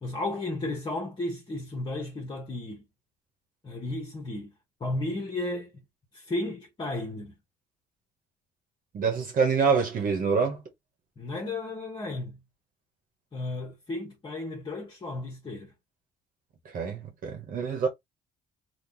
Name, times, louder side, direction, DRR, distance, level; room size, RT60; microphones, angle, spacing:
voice 1, 0.0-2.8 3.6-4.5 4.8-5.8 6.1-7.4 11.2-12.4 13.3-15.7, left 2 dB, 30° left, 1.1 m, -34 dB
voice 2, 8.9-10.6 16.6-17.9, right 5 dB, 55° right, 1.1 m, -26 dB
3.0 x 2.3 x 3.8 m
cardioid pair, 110°, 17 cm